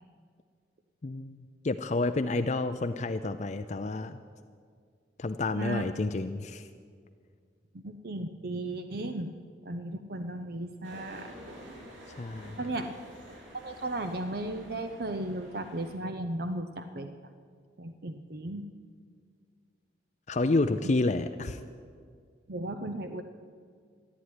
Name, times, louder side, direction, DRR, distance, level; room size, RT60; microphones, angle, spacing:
voice 1, 1.0-4.2 5.2-6.7 12.2-12.6 20.3-21.6, left 2 dB, 40° left, 8 dB, 0.5 m, -29 dB
voice 2, 7.7-9.4 9.7-11.4 12.6-12.9 13.5-17.1 17.8-18.7 20.8-20.9 22.5-23.2, right 1 dB, 55° right, 8 dB, 0.7 m, -35 dB
sound 1, 10.8-16.0, equal, 90° right, 4.3 m, -49 dB
14.0 x 10.5 x 9.7 m, 2.1 s
head